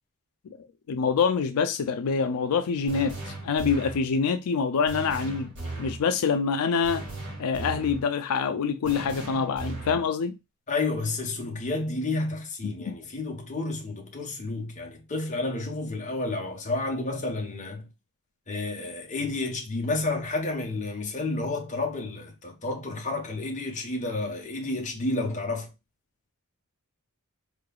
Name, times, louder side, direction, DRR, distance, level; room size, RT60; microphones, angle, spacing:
voice 1, 0.9-5.5 5.8-7.0 7.4-10.3 12.8-12.9, left 5 dB, 85° left, 0.4 m, -26 dB
sound 1, 2.9-4.1 4.9-6.0 6.8-8.1 8.9-10.1, right 2 dB, 55° right, 2.2 m, -37 dB
voice 2, 10.7-17.9 18.5-25.7, left 2 dB, 35° left, 1.1 m, -30 dB
4.5 x 3.2 x 2.3 m
head